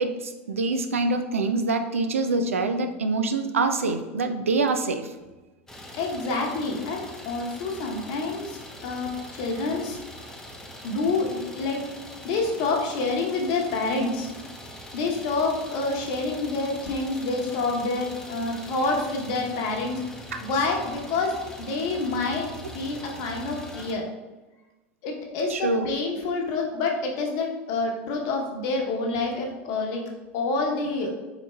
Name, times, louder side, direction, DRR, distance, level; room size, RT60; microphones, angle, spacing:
voice 1, 0.0-5.1 20.3-20.4 25.5-25.9, right 3 dB, 85° right, 8 dB, 0.3 m, -25 dB
Idling, 5.7-23.9, equal, 5° left, 0.6 m, -42 dB
voice 2, 6.0-10.0 10.8-11.8 12.2-14.3 14.9-20.0 20.4-22.5 22.7-24.0 25.0-30.0 30.3-31.1, left 3 dB, 55° left, 1 dB, 0.9 m, -27 dB
4.1 x 4.0 x 2.3 m, 1.2 s
hypercardioid pair, 85°, 7 cm